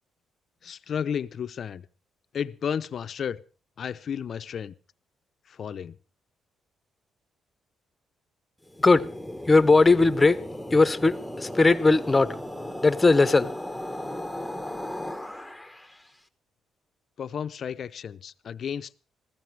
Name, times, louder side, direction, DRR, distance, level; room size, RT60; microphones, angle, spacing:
voice 1, 0.6-1.8 2.3-3.4 3.8-4.7 5.5-6.0 17.2-18.9, left 7 dB, 55° left, 0.6 m, -32 dB
sound 1, 8.6-16.0, left 1 dB, ahead, 1.3 m, -36 dB
voice 2, 9.5-10.4 10.7-12.4 12.8-13.5, left 3 dB, 20° left, 0.9 m, -19 dB
15.5 x 14.5 x 4.7 m
cardioid pair, 90°, 0 cm